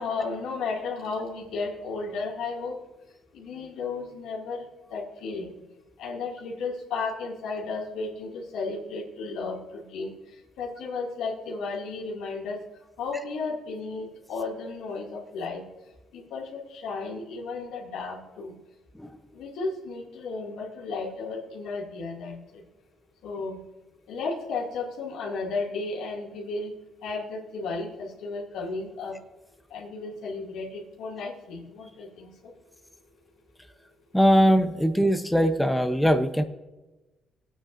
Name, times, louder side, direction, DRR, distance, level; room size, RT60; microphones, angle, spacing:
voice 1, 0.0-2.8 3.3-4.7 4.9-5.6 6.0-10.1 10.6-12.6 13.0-15.7 16.1-18.6 19.3-22.6 23.2-23.6 24.1-26.8 27.0-29.2 29.7-32.5, left 4 dB, 85° left, -1 dB, 2.4 m, -34 dB
voice 2, 34.1-36.4, equal, 5° left, 6 dB, 0.8 m, -21 dB
19.0 x 9.0 x 2.6 m, 1.1 s
cardioid pair, 90°, 0 cm